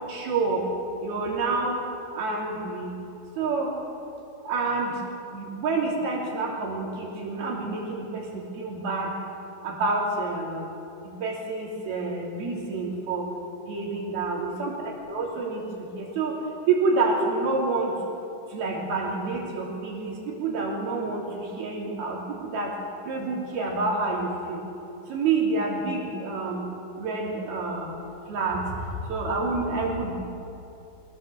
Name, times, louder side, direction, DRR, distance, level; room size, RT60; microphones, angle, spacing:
voice 1, 0.1-0.7 1.0-1.7 2.1-2.9 3.4-3.7 4.4-4.9 5.3-9.1 9.6-10.7 11.2-13.3 13.7-15.6 16.0-16.3 16.7-17.9 18.5-22.7 23.0-24.6 25.1-26.6 27.0-28.6 29.1-30.1, right 3 dB, 75° right, -2 dB, 5.1 m, -28 dB
23.5 x 17.5 x 7.7 m, 2.8 s
omnidirectional pair, 4.4 m